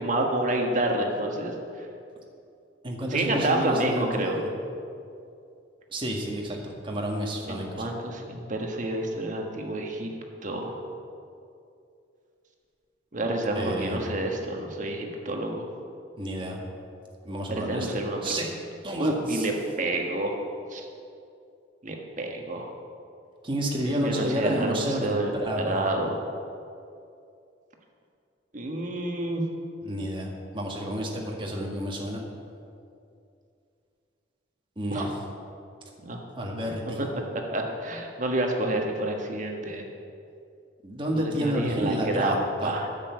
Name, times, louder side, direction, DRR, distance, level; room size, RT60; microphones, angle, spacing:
voice 1, 0.0-1.9 3.1-4.4 7.5-10.1 10.4-10.8 13.1-15.7 17.5-18.4 19.0-20.4 20.7-20.8 21.8-22.7 23.8-26.1 28.5-29.4 34.9-35.1 36.0-36.2 37.0-37.1 37.3-39.9 41.1-42.9, right 1 dB, 45° right, 1 dB, 1.4 m, -29 dB
voice 2, 2.8-4.3 5.9-7.8 13.5-14.0 16.2-16.6 17.2-17.9 18.2-18.5 18.8-19.4 23.4-25.8 29.8-32.2 34.8-35.2 36.4-37.0 40.8-42.3 42.6-42.7, equal, 30° right, 0 dB, 1.6 m, -30 dB
9.8 x 6.9 x 8.3 m, 2.5 s
head